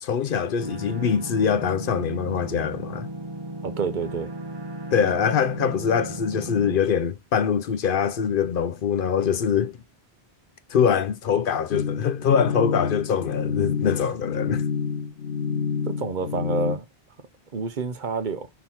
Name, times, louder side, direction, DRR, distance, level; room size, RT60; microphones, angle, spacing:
voice 1, 0.0-3.1 4.9-9.7 10.7-14.7, left 7 dB, 65° left, 0.7 m, -23 dB
sound 1, 0.6-6.8, right 1 dB, 25° right, 1.3 m, -35 dB
voice 2, 3.6-4.3 15.9-16.8 17.5-18.5, right 4 dB, 50° right, 0.9 m, -28 dB
sound 2, 11.7-16.8, left 6 dB, 90° left, 1.1 m, -28 dB
6.1 x 4.6 x 5.6 m
omnidirectional pair, 1.0 m